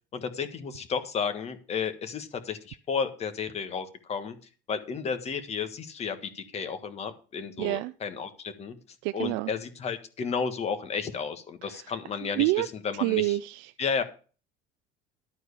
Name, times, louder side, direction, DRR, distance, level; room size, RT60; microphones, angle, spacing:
voice 1, 0.1-4.4 4.7-8.7 9.1-13.4 13.8-14.0, left 6 dB, 35° left, 1.5 m, -32 dB
voice 2, 7.6-7.9 9.0-9.5 11.7-11.8 12.4-12.7 13.0-13.7, right 20 dB, 80° right, 0.4 m, -27 dB
12.0 x 4.6 x 8.2 m
cardioid pair, 130°, 18 cm